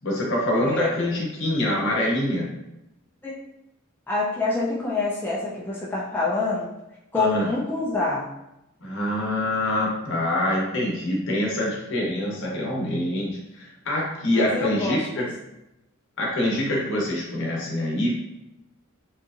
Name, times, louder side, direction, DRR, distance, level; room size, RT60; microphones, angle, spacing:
voice 1, 0.0-2.5 7.1-7.5 8.8-15.3 16.2-18.2, left 1 dB, 60° left, -3 dB, 0.8 m, -25 dB
voice 2, 0.6-0.9 3.2-3.3 4.1-6.7 7.1-8.3 14.3-15.3, left 3 dB, 10° left, -6 dB, 0.4 m, -26 dB
2.8 x 2.4 x 2.4 m, 0.91 s
head